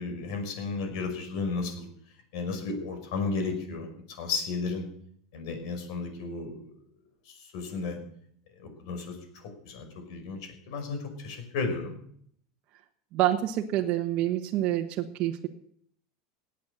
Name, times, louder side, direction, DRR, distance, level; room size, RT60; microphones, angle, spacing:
voice 1, 0.0-1.9 2.3-3.9 4.2-4.8 5.3-6.7 7.3-8.0 8.6-11.9, left 4 dB, 65° left, 6 dB, 5.6 m, -33 dB
voice 2, 13.1-15.5, right 13 dB, 45° right, 2 dB, 1.2 m, -27 dB
17.5 x 9.3 x 6.7 m, 0.65 s
supercardioid pair, 150°, 3 cm